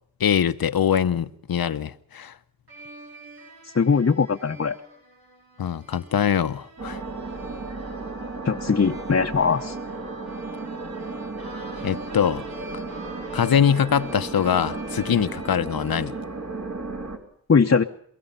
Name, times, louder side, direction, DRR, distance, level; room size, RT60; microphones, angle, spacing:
voice 1, 0.2-2.3 5.6-7.0 11.8-12.4 13.3-16.1, left 8 dB, 75° left, 1.0 m, -23 dB
sound 1, 2.7-16.4, right 2 dB, 75° right, 4.8 m, -45 dB
voice 2, 3.7-4.8 8.4-9.7 17.5-17.8, left 5 dB, 40° left, 0.9 m, -20 dB
sound 2, 6.8-17.2, right 3 dB, 45° right, 3.9 m, -34 dB
23.0 x 22.5 x 5.7 m
cardioid pair, 50°, 36 cm